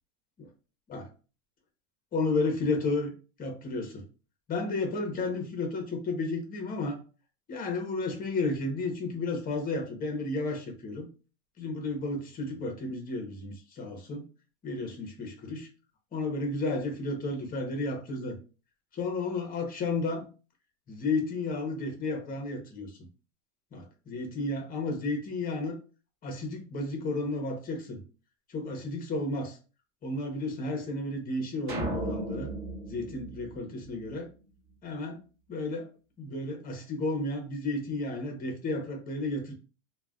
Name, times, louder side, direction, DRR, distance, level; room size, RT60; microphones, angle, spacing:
voice 1, 2.1-3.1 3.4-4.0 4.5-7.0 7.5-11.1 11.6-14.2 14.6-15.7 16.1-18.4 18.9-20.3 20.9-23.0 23.7-25.8 26.2-28.0 28.5-29.6 30.0-32.5 32.9-34.3 34.8-35.2 35.5-35.9 36.2-39.5, left 2 dB, 20° left, 4 dB, 0.8 m, -32 dB
sound 1, 31.7-34.2, right 2 dB, 30° right, 1.0 m, -36 dB
2.4 x 2.3 x 3.5 m, 0.34 s
supercardioid pair, 140°, 39 cm